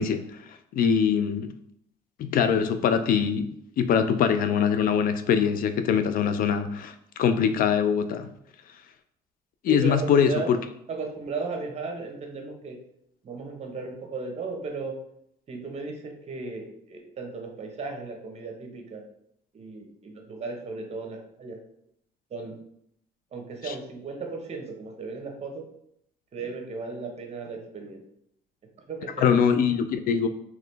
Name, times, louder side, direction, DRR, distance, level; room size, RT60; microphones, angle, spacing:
voice 1, 0.0-1.5 2.2-8.3 9.6-10.6 23.6-23.7 29.2-30.3, left 7 dB, 55° left, 9 dB, 0.4 m, -23 dB
voice 2, 9.7-10.5 10.9-12.8 13.2-14.9 15.5-19.0 19.5-21.6 22.3-22.5 23.3-25.6 26.3-28.0 28.9-29.3, right 3 dB, 40° right, 2 dB, 1.0 m, -35 dB
3.8 x 3.0 x 3.3 m, 0.73 s
cardioid pair, 110°, 17 cm